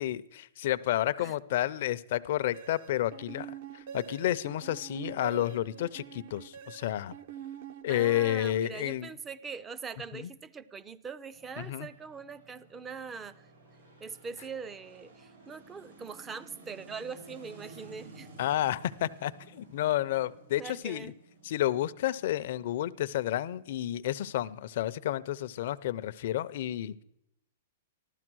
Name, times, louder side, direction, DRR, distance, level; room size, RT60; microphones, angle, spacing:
voice 1, 0.0-7.2 7.8-9.1 10.1-10.3 11.6-11.9 18.4-21.1 21.4-27.0, left 13 dB, 55° left, 14 dB, 0.6 m, -31 dB
sound 1, 2.5-8.4, right 8 dB, 55° right, 0.8 m, -45 dB
voice 2, 7.9-13.4 14.0-18.3 20.6-21.1, right 5 dB, 15° right, 16 dB, 0.5 m, -42 dB
sound 2, 11.3-25.6, right 2 dB, 80° right, 5.8 m, -55 dB
15.0 x 12.5 x 6.2 m, 0.81 s
hypercardioid pair, 155°, 0 cm